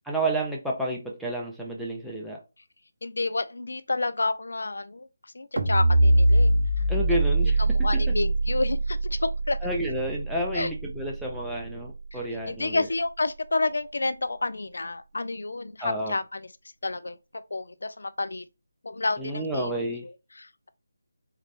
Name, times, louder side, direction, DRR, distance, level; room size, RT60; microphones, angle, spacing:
voice 1, 0.1-2.4 6.9-8.1 9.6-12.9 15.8-16.1 19.2-20.0, right 1 dB, ahead, 0.5 m, -30 dB
voice 2, 3.0-5.1 5.3-6.5 7.6-9.6 10.5-10.7 12.1-12.2 12.5-16.5 16.8-17.2 17.5-18.4 18.8-19.8 20.4-20.7, left 2 dB, 60° left, 0.4 m, -29 dB
sound 1, 5.6-11.9, right 1 dB, 55° right, 0.7 m, -23 dB
4.1 x 2.4 x 3.3 m
figure-of-eight pair, 155°, 0 cm